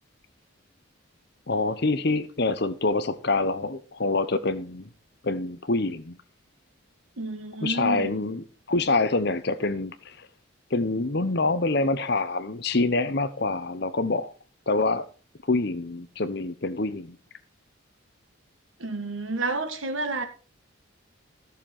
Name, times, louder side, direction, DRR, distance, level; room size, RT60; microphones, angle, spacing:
voice 1, 1.5-4.9 5.2-6.2 7.6-10.3 10.7-14.3 14.7-15.0 15.5-17.2, left 3 dB, 50° left, 0.9 m, -26 dB
voice 2, 7.2-8.1 18.8-20.2, right 2 dB, 70° right, 1.6 m, -30 dB
14.0 x 6.8 x 4.4 m
head